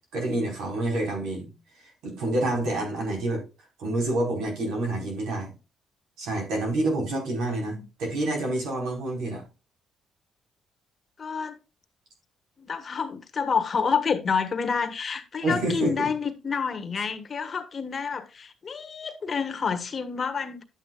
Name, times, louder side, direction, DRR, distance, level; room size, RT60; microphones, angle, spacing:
voice 1, 0.1-1.5 1.8-3.4 3.8-5.5 6.2-9.4 15.4-16.1, right 2 dB, 90° right, 4.3 m, -28 dB
voice 2, 11.2-11.6 12.6-20.6, left 6 dB, 40° left, 1.4 m, -28 dB
11.0 x 8.2 x 2.4 m
cardioid pair, 90°, 0 cm